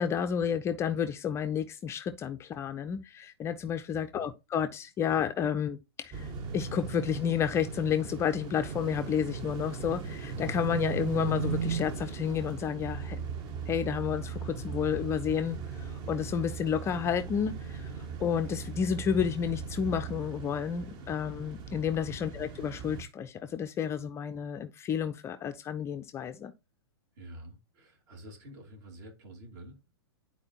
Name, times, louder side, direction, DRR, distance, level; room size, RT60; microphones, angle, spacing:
voice 1, 0.0-13.2 13.7-17.9 18.2-26.5, left 8 dB, 20° left, 0.4 m, -31 dB
voice 2, 3.9-4.3 22.1-22.2 27.2-29.9, right 1 dB, 45° right, 2.8 m, -48 dB
sound 1, 6.1-23.0, right 5 dB, 30° right, 1.2 m, -38 dB
10.5 x 4.3 x 2.8 m
figure-of-eight pair, 110°, 14 cm